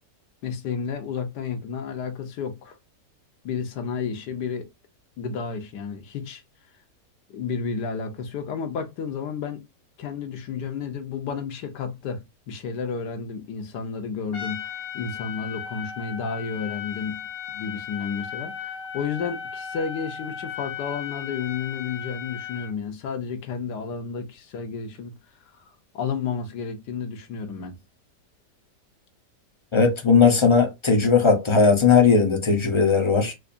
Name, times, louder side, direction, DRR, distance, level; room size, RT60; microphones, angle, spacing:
voice 1, 0.4-2.8 3.4-4.7 5.2-6.4 7.3-9.6 10.0-12.2 12.5-17.2 17.5-25.1 25.9-27.8, left 6 dB, 80° left, 1.5 m, -31 dB
Trumpet, 14.3-22.8, left 9 dB, 60° left, 1.3 m, -36 dB
voice 2, 29.7-33.3, left 5 dB, 35° left, 0.5 m, -18 dB
4.8 x 2.5 x 2.5 m
omnidirectional pair, 1.8 m